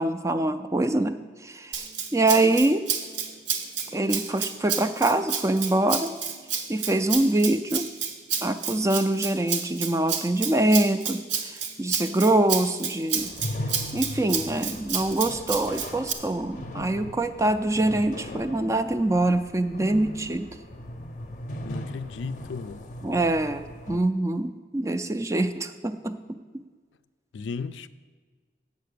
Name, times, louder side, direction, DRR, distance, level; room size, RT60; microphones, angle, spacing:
voice 1, 0.0-1.8 2.1-2.8 3.9-6.1 6.7-7.9 8.4-13.3 13.9-20.5 23.0-26.4, right 2 dB, 15° right, 0.3 m, -24 dB
Rattle (instrument), 1.7-16.1, right 6 dB, 80° right, 0.9 m, -30 dB
sound 1, 13.1-24.0, left 1 dB, 45° left, 0.6 m, -38 dB
voice 2, 21.6-22.8 27.3-27.9, left 4 dB, 90° left, 0.4 m, -35 dB
8.3 x 6.8 x 6.7 m
head